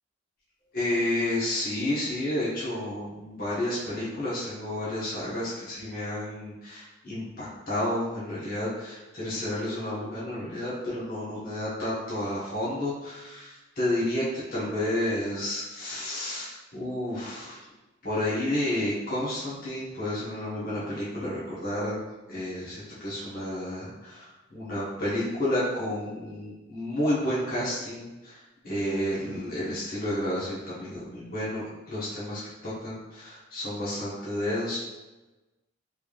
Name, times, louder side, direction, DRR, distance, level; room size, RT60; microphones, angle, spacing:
voice 1, 0.7-17.6 18.0-22.0 22.3-34.8, left 1 dB, 50° left, -9 dB, 1.1 m, -31 dB
3.5 x 3.3 x 2.3 m, 1.1 s
head